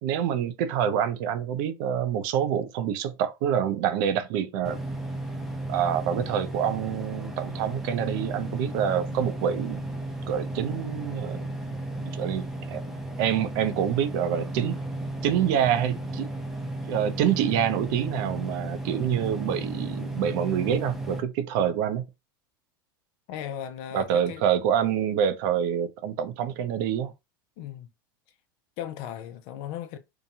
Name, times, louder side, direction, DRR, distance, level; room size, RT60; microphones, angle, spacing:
voice 1, 0.0-4.8 5.7-9.8 10.3-11.4 12.1-12.8 13.2-14.8 15.2-16.3 16.9-22.0 23.9-27.1, right 9 dB, 65° right, 0.5 m, -26 dB
sound 1, 4.6-21.2, right 1 dB, 5° right, 0.6 m, -34 dB
voice 2, 23.3-24.4 27.6-27.9 28.8-30.0, left 10 dB, 55° left, 0.5 m, -37 dB
2.8 x 2.2 x 2.6 m
hypercardioid pair, 100°, 12 cm